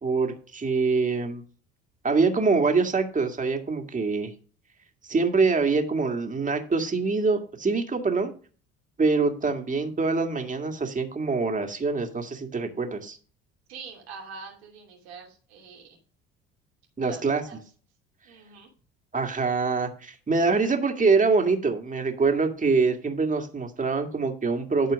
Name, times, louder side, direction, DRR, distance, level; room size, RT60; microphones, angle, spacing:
voice 1, 0.0-1.4 2.0-4.3 5.0-8.3 9.0-13.2 17.0-17.4 19.1-24.9, right 4 dB, 25° right, 4 dB, 2.0 m, -24 dB
voice 2, 13.7-16.0 17.0-17.6 18.2-18.7, right 5 dB, 80° right, 0 dB, 2.7 m, -44 dB
11.5 x 4.4 x 5.0 m, 0.40 s
hypercardioid pair, 65°, 32 cm